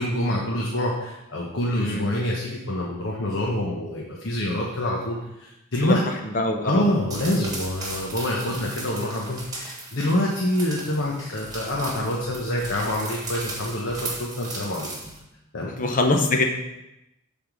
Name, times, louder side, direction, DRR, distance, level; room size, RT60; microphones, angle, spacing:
voice 1, 0.0-6.0 6.6-14.9 15.5-15.7, left 1 dB, 60° left, -3 dB, 1.1 m, -26 dB
voice 2, 1.7-2.1 5.8-6.0 6.2-6.9 15.8-16.4, left 2 dB, 40° left, 4 dB, 0.6 m, -23 dB
sound 1, 7.1-15.2, right 2 dB, 20° right, 1.4 m, -37 dB
8.6 x 3.7 x 6.1 m, 0.92 s
head